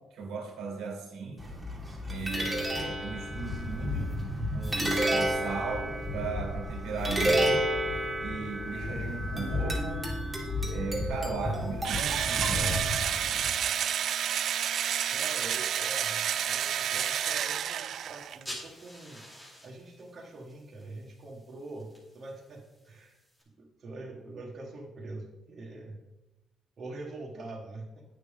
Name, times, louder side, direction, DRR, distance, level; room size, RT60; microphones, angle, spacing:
voice 1, 0.1-1.4 2.1-4.2 4.5-7.7 8.2-10.1 10.7-12.9, right 4 dB, 85° right, 1 dB, 2.2 m, -37 dB
sound 1, 1.4-13.5, equal, 10° right, 2.0 m, -31 dB
Engine / Drill, 11.8-18.4, right 9 dB, 70° right, 0.3 m, -30 dB
voice 2, 15.1-19.2 19.6-21.9 22.1-23.2 23.6-26.0 26.8-28.0, right 2 dB, 50° right, -2 dB, 1.5 m, -44 dB
sound 2, 18.2-23.4, equal, 10° left, 2.5 m, -49 dB
8.8 x 6.5 x 3.6 m, 0.98 s
cardioid pair, 90°, 0 cm